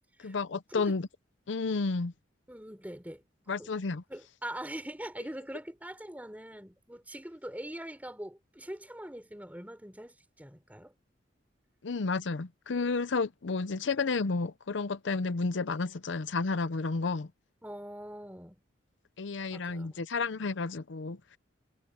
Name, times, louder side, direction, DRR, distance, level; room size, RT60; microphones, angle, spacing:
voice 1, 0.2-1.1 1.5-2.1 3.5-4.0 11.8-17.3 19.2-21.2, left 4 dB, 75° left, 0.7 m, -31 dB
voice 2, 2.5-3.7 4.1-10.9 17.6-18.6 19.5-20.2, right 1 dB, 10° right, 4.4 m, -43 dB
head